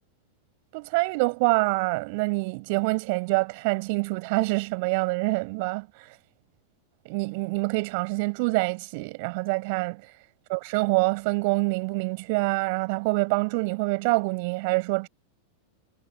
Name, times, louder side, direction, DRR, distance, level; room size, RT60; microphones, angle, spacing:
voice 1, 0.7-6.1 7.0-10.0 10.5-15.1, right 29 dB, 45° right, 6.6 m, -26 dB
figure-of-eight pair, 90°, 0 cm